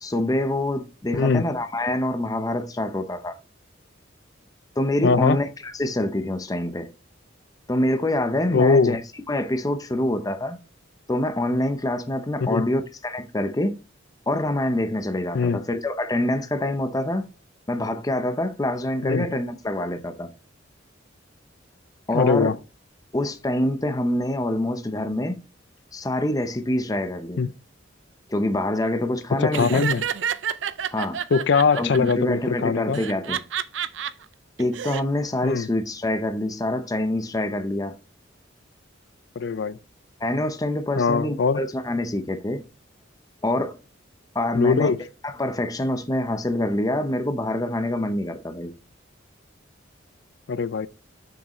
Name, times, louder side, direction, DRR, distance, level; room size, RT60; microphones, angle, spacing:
voice 1, 0.0-3.4 4.8-6.9 7.7-9.0 9.3-10.6 11.1-13.7 14.3-17.2 17.7-20.3 22.1-22.5 23.1-25.4 25.9-27.4 28.3-29.8 30.9-31.2 31.8-33.4 34.6-38.0 40.2-42.6 43.4-43.8 44.3-44.9 45.2-48.7, left 1 dB, 20° left, 0.6 m, -25 dB
voice 2, 1.1-1.5 5.0-5.4 8.5-9.0 12.4-12.7 15.3-15.6 19.0-19.3 22.1-22.6 27.4-27.5 29.3-30.0 31.3-33.0 35.4-35.7 39.4-39.8 41.0-41.6 44.5-45.0 50.5-50.9, left 5 dB, 60° left, 0.4 m, -21 dB
Laughter, 29.5-32.1 32.9-34.1 34.6-35.0, right 8 dB, 70° right, 0.5 m, -29 dB
6.6 x 6.4 x 3.0 m
head